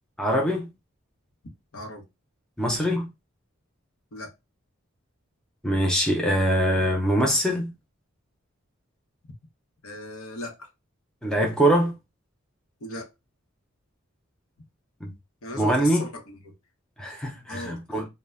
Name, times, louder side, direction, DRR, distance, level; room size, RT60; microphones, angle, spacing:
voice 1, 0.2-0.7 2.6-3.1 5.6-7.7 11.2-11.9 15.0-15.1 15.6-16.0 17.0-18.1, equal, 5° left, 0.4 m, -23 dB
voice 2, 1.7-2.0 4.1-4.3 9.8-10.7 12.8-13.1 15.4-16.5 17.5-18.0, left 1 dB, 85° left, 0.7 m, -37 dB
2.1 x 2.1 x 3.4 m
head